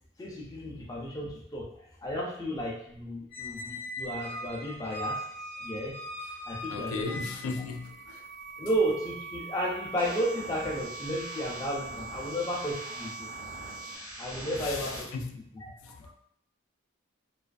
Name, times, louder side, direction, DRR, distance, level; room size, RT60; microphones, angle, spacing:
voice 1, 0.2-1.7 2.0-5.2 5.6-6.0 6.5-7.2 8.6-13.3 14.2-15.1 15.6-15.7 16.0-16.1, equal, 15° left, -3 dB, 0.4 m, -33 dB
Squeak, 3.3-7.8, left 1 dB, 50° left, 0.7 m, -39 dB
voice 2, 6.7-8.3 14.6-15.3 15.8-16.1, left 4 dB, 85° left, 4 dB, 0.3 m, -37 dB
sound 1, 7.5-14.0, right 4 dB, 55° right, 0.3 m, -43 dB
sound 2, 10.0-15.0, right 1 dB, 90° right, 1.1 m, -43 dB
2.3 x 2.3 x 2.3 m, 0.69 s
head